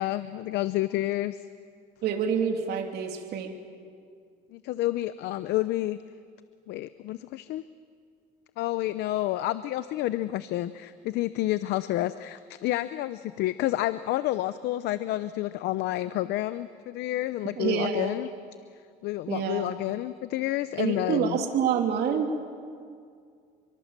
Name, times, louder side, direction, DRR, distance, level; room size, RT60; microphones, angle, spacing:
voice 1, 0.0-1.4 4.5-6.0 6.7-7.6 8.6-18.3 19.0-21.4, left 15 dB, 85° left, 13 dB, 0.7 m, -29 dB
voice 2, 2.0-3.5 17.6-18.1 19.3-19.7 20.8-22.3, right 7 dB, 70° right, 3 dB, 3.2 m, -27 dB
28.0 x 24.0 x 7.5 m, 2.2 s
cardioid pair, 110°, 17 cm